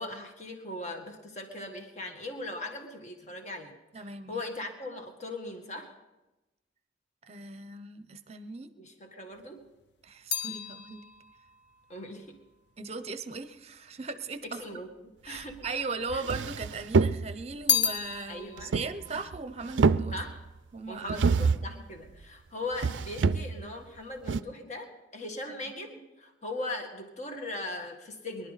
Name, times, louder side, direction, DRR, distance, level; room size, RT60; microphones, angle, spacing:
voice 1, 0.0-5.9 8.8-9.7 11.9-12.4 14.4-15.7 16.1-16.2 18.3-18.8 20.1-20.4 20.9-28.5, left 2 dB, 40° left, 3 dB, 1.8 m, -39 dB
voice 2, 3.9-4.4 7.2-8.7 10.0-11.0 12.8-14.6 15.2-20.2 20.7-21.2 25.6-25.7, right 4 dB, 35° right, 11 dB, 0.8 m, -38 dB
sound 1, 9.3-13.8 14.5-15.3 15.6-16.8 17.1-20.6 20.9-21.4, left 7 dB, 70° left, 1.0 m, -34 dB
sound 2, 15.6-15.7 16.1-17.5 18.6-19.4 19.6-20.5 21.1-21.8 22.7-23.7 24.3-24.4, right 4 dB, 85° right, 0.4 m, -26 dB
24.0 x 11.5 x 4.1 m, 1.0 s
head